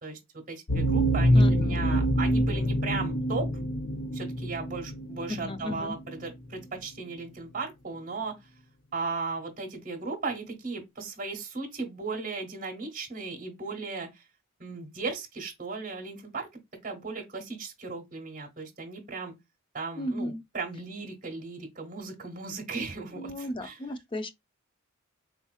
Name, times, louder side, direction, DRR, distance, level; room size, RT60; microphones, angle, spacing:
voice 1, 0.0-3.5 4.1-8.4 8.9-14.2 14.6-16.5 16.8-19.3 19.7-23.8, right 4 dB, 40° right, 1.1 m, -36 dB
sound 1, 0.7-5.5, equal, 60° left, 0.8 m, -25 dB
voice 2, 1.3-1.8 5.3-6.0 20.0-20.4 23.1-24.3, left 1 dB, 25° left, 0.4 m, -34 dB
3.8 x 2.8 x 2.3 m
head